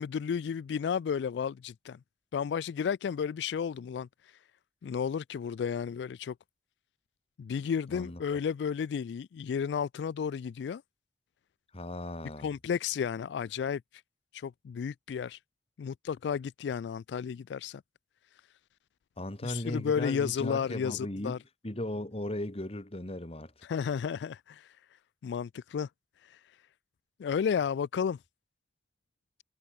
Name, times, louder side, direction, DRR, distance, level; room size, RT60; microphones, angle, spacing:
voice 1, 0.0-2.0 2.3-4.4 4.8-6.3 7.4-10.8 12.4-13.8 14.3-15.4 15.8-17.8 19.4-21.4 23.6-24.8 25.2-25.9 26.2-26.4 27.2-28.2, left 7 dB, 80° left, 0.3 m, -32 dB
voice 2, 7.9-8.4 11.7-12.5 19.2-21.4 21.6-23.7, left 1 dB, 35° left, 2.0 m, -37 dB
head